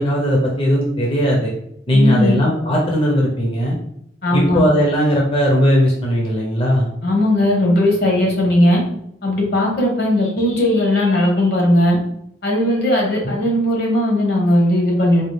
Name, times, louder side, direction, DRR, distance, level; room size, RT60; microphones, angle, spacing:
voice 1, 0.0-1.5 1.9-3.7 4.3-6.9 13.2-13.3, equal, 30° left, -3 dB, 0.7 m, -17 dB
voice 2, 1.9-2.3 4.2-4.6 7.0-8.8 9.2-12.0 12.4-15.2, left 1 dB, 60° left, -1 dB, 1.1 m, -17 dB
4.1 x 2.3 x 3.2 m, 0.73 s
head